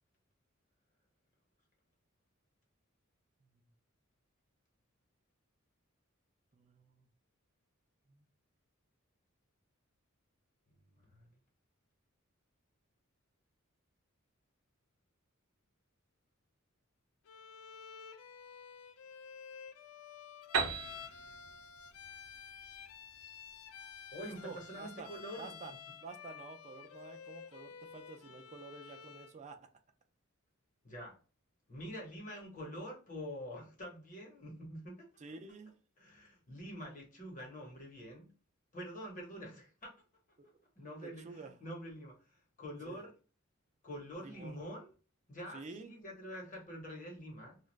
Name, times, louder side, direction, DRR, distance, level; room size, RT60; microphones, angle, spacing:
voice 1, 6.5-7.1 8.1-8.3 24.2-25.1 25.4-25.7 26.0-29.6 35.2-35.7 40.4-40.5 41.0-41.6 42.8-43.0 44.2-44.6 45.5-45.9, right 4 dB, 35° right, 6 dB, 0.4 m, -50 dB
voice 2, 10.7-11.3 24.1-25.8 30.8-31.2 31.7-35.1 36.0-38.3 38.7-39.9 40.7-43.1 43.8-44.9 45.3-47.6, equal, 40° left, 0 dB, 1.1 m, -46 dB
Bowed string instrument, 17.3-29.4, left 7 dB, 70° left, 0.3 m, -51 dB
Piano, 20.5-24.2, right 5 dB, 70° right, 0.7 m, -39 dB
2.4 x 2.3 x 3.1 m, 0.35 s
head